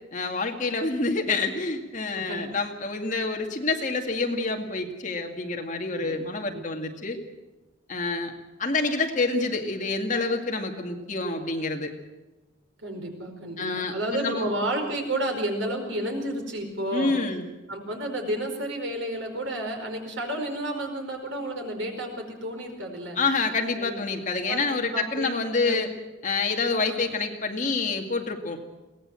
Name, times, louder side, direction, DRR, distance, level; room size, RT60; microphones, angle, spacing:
voice 1, 0.1-7.2 7.9-8.3 8.6-11.9 13.6-14.5 16.9-17.4 23.2-25.9 26.2-28.6, left 3 dB, 40° left, 3 dB, 2.2 m, -27 dB
voice 2, 2.1-2.5 5.9-6.2 6.5-6.6 12.8-17.1 17.7-23.2 23.8-23.9 24.5-25.4 25.6-25.8 26.7-26.8, right 1 dB, 80° right, 3 dB, 4.9 m, -31 dB
22.5 x 18.0 x 7.7 m, 1.1 s
head